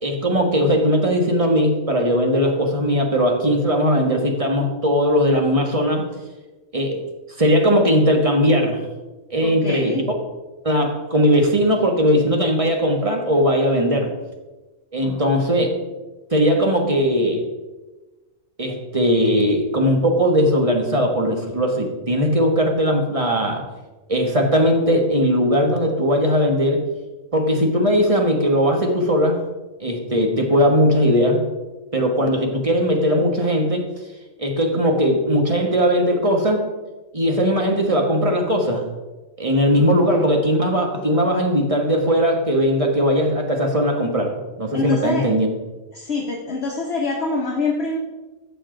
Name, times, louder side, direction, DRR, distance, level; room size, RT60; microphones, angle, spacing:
voice 1, 0.0-6.1 6.7-7.0 7.4-8.8 9.3-10.0 10.6-14.1 14.9-15.7 16.3-17.4 18.6-23.6 24.1-26.8 27.3-29.4 29.8-31.4 31.9-33.8 34.4-36.7 37.1-38.9 39.4-45.5, equal, 25° right, 2 dB, 1.3 m, -19 dB
voice 2, 9.4-10.0 15.0-15.3 39.8-40.2 44.7-45.3 45.9-48.0, left 3 dB, 55° left, 0 dB, 1.2 m, -26 dB
12.5 x 6.9 x 3.8 m, 1.2 s
omnidirectional pair, 1.4 m